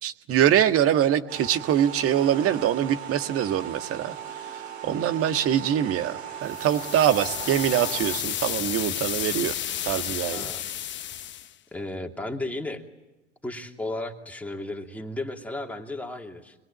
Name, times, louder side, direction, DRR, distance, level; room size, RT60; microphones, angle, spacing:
voice 1, 0.0-4.1 4.5-9.5 9.8-10.5, right 10 dB, 45° right, 9 dB, 1.7 m, -24 dB
sound 1, 1.3-8.2, right 8 dB, 85° right, 3.5 m, -38 dB
sound 2, 6.5-11.5, left 11 dB, 35° left, 1.1 m, -32 dB
voice 2, 10.3-10.6 11.7-12.8 13.4-16.5, left 2 dB, 5° left, 2 dB, 2.8 m, -34 dB
26.0 x 22.5 x 8.7 m, 1.1 s
hypercardioid pair, 80°, 32 cm